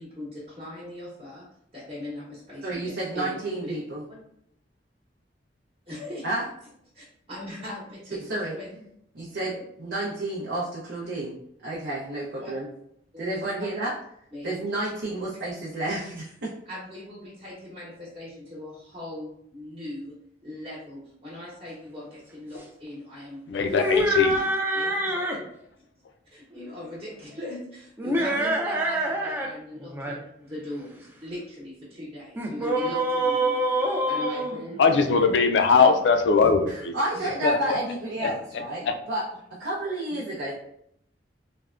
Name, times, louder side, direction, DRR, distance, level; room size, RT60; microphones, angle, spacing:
voice 1, 0.0-1.4 1.7-3.8 5.9-6.2 6.9-8.8 9.5-9.6 12.4-12.5 13.1-13.3 14.3-14.6 16.7-20.1 20.4-23.8 24.7-25.4 26.3-35.3 35.8-35.9 37.1-37.3 40.1-40.2, left 1 dB, 30° right, -7 dB, 0.8 m, -40 dB
voice 2, 2.6-4.0 6.2-6.4 8.1-8.5 9.1-12.7 13.2-13.9 14.4-16.5 36.7-39.3 39.6-40.5, right 2 dB, 70° right, -6 dB, 0.6 m, -31 dB
voice 3, 23.5-24.5 34.8-36.9 37.4-37.6 38.2-38.3 38.8-38.9, left 5 dB, 75° left, 6 dB, 0.4 m, -20 dB
sound 1, 23.7-25.4 28.0-29.5 29.8-30.2 32.4-35.3, right 1 dB, 10° right, 0.3 m, -26 dB
3.3 x 2.1 x 2.4 m, 0.73 s
head